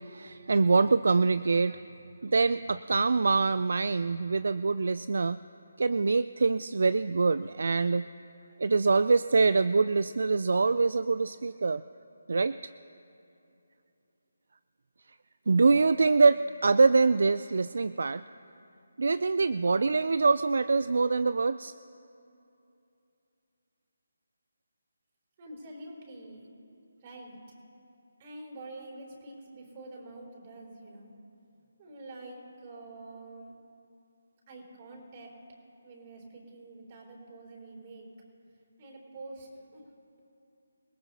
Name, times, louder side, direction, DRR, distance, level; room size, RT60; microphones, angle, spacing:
voice 1, 0.0-1.8 2.2-5.4 5.8-8.1 8.6-11.8 12.3-12.7 15.5-18.2 19.0-21.7, right 4 dB, 65° right, 15 dB, 0.3 m, -24 dB
voice 2, 25.4-26.5 27.0-27.4 28.2-31.1 31.8-33.5 34.5-35.3 35.8-38.1 38.8-39.9, right 2 dB, 30° right, -3 dB, 4.5 m, -46 dB
27.0 x 18.0 x 2.9 m, 2.7 s
figure-of-eight pair, 155°, 0 cm